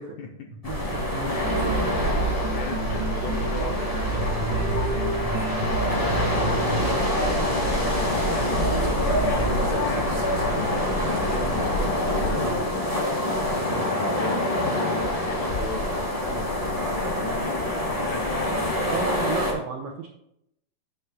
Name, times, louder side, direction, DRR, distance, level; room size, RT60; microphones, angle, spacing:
voice 1, 0.0-1.0 1.2-2.2 2.5-6.3 7.4-18.8, left 4 dB, 75° left, 3 dB, 1.8 m, -38 dB
sound 1, 0.6-19.5, left 1 dB, 25° left, 0.8 m, -25 dB
voice 2, 0.7-1.4 13.5-13.8 16.9-17.0 18.8-20.1, right 6 dB, 85° right, 2 dB, 1.3 m, -33 dB
sound 2, 1.0-10.8, right 4 dB, 45° right, 0.9 m, -38 dB
sound 3, 1.4-11.0, right 4 dB, 70° right, 2.1 m, -31 dB
9.3 x 3.4 x 5.4 m, 0.79 s
omnidirectional pair, 3.9 m